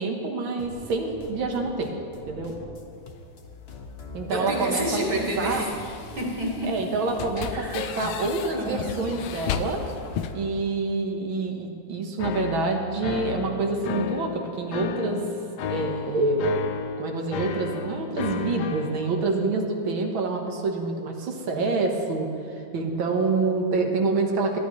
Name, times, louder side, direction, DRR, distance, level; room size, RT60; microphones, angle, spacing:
voice 1, 0.0-1.9 2.3-2.5 4.1-4.8 5.4-5.6 6.6-9.8 10.3-15.2 15.6-16.5 17.0-24.6, right 3 dB, 80° right, 2 dB, 2.1 m, -27 dB
sound 1, 0.6-10.5, left 2 dB, 40° left, 1.1 m, -44 dB
sound 2, 2.9-10.3, left 8 dB, 85° left, 1.5 m, -36 dB
voice 2, 4.3-5.7 6.2-6.7 7.5-7.9 8.5-9.0, equal, 50° right, -3 dB, 2.7 m, -29 dB
sound 3, 12.2-19.0, left 5 dB, 70° left, 1.1 m, -33 dB
21.5 x 12.0 x 3.1 m, 2.5 s
omnidirectional pair, 2.2 m